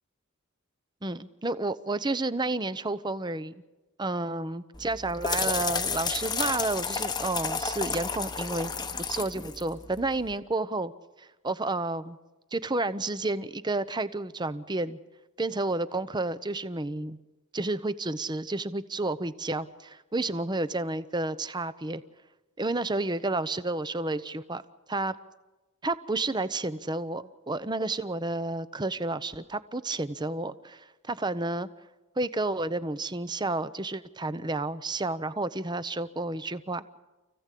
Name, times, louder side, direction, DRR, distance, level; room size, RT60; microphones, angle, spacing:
voice 1, 1.0-3.5 4.0-8.7 9.1-10.9 11.2-12.2 12.5-15.0 15.4-17.2 17.5-22.0 22.6-24.6 24.9-25.1 25.8-31.7 32.2-36.9, right 2 dB, 20° right, 14 dB, 0.8 m, -31 dB
sound 1, 4.7-10.3, left 5 dB, 20° left, 1.0 m, -32 dB
29.0 x 16.0 x 8.4 m, 1.1 s
head